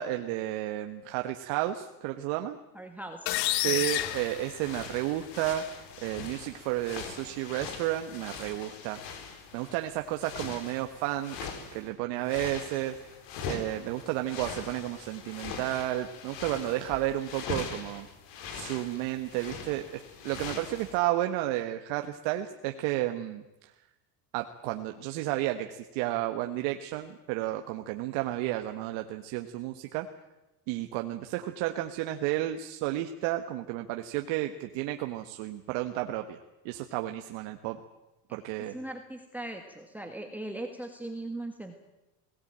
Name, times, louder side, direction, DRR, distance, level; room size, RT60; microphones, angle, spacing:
voice 1, 0.0-2.6 3.6-5.6 6.0-9.0 9.5-11.4 11.7-13.0 13.5-18.1 18.5-23.4 24.3-30.1 30.7-37.8 38.3-38.8, right 14 dB, 65° right, 6 dB, 1.5 m, -32 dB
voice 2, 2.7-3.3 3.6-3.8 38.7-41.8, right 1 dB, 5° right, 5 dB, 1.7 m, -39 dB
sound 1, 3.3-5.2, left 16 dB, 90° left, 1.2 m, -30 dB
sound 2, 3.6-11.9 12.2-21.0, left 5 dB, 60° left, 4.1 m, -42 dB
21.0 x 18.0 x 8.9 m, 1.0 s
supercardioid pair, 135°, 49 cm